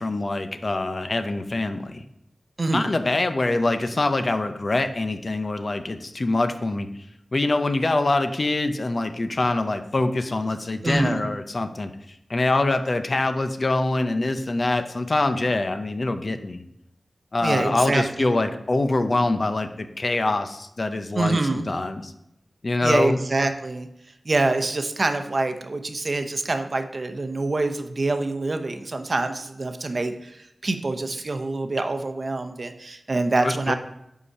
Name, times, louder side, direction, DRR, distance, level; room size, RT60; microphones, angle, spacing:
voice 1, 0.0-2.0 2.7-6.9 7.3-11.9 12.3-16.6 17.3-22.1 22.6-23.2 33.4-33.8, left 2 dB, 55° left, 9 dB, 0.6 m, -24 dB
voice 2, 2.6-2.9 10.8-11.2 17.4-18.3 21.2-21.7 22.8-23.9 24.3-33.8, right 2 dB, 55° right, 7 dB, 0.7 m, -25 dB
5.3 x 4.9 x 5.5 m, 0.80 s
cardioid pair, 45°, 0 cm